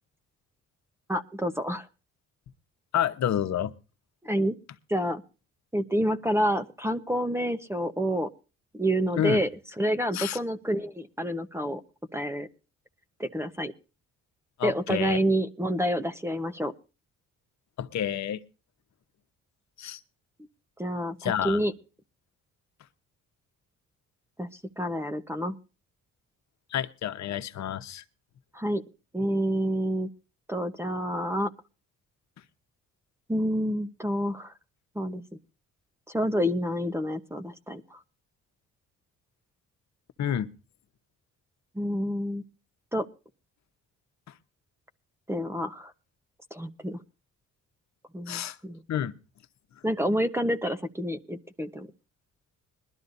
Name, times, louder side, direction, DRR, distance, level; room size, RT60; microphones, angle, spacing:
voice 1, 1.1-1.9 4.2-4.5 4.9-5.2 5.7-8.3 8.7-9.5 9.8-11.8 12.1-12.5 13.2-13.7 14.6-16.7 20.8-21.7 24.4-24.5 24.8-25.6 28.5-28.8 29.1-30.1 30.5-31.5 33.3-34.5 34.9-35.2 36.1-38.0 41.7-42.4 42.9-43.1 45.3-45.9 46.5-47.0 48.1-48.8 49.8-51.9, equal, 10° right, 9 dB, 1.0 m, -28 dB
voice 2, 2.9-3.7 9.2-9.4 10.1-10.4 14.6-15.2 17.8-18.4 19.8-20.0 21.2-21.6 26.7-28.0 40.2-40.5 48.3-48.6 48.9-49.1, left 10 dB, 65° left, 10 dB, 1.1 m, -29 dB
21.0 x 12.5 x 2.6 m, 0.33 s
cardioid pair, 90°, 30 cm